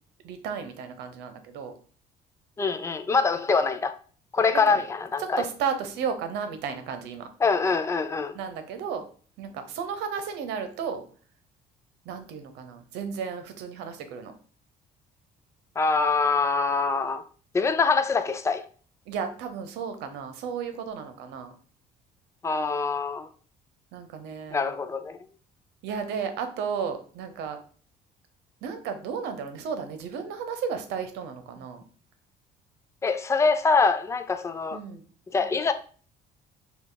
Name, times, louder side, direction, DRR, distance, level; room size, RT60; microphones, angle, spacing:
voice 1, 0.2-1.7 4.7-4.8 5.2-7.3 8.3-9.0 9.4-11.0 12.0-14.3 19.1-21.5 23.9-24.7 25.8-27.6 28.6-31.8 34.7-35.0, right 6 dB, 90° right, 0.8 m, -33 dB
voice 2, 2.6-3.9 4.3-5.4 7.4-8.4 15.8-17.2 17.5-18.6 22.4-23.3 24.5-25.2 33.0-34.8 35.3-35.7, left 4 dB, 15° left, 0.5 m, -24 dB
5.6 x 2.4 x 3.8 m
cardioid pair, 110°, 17 cm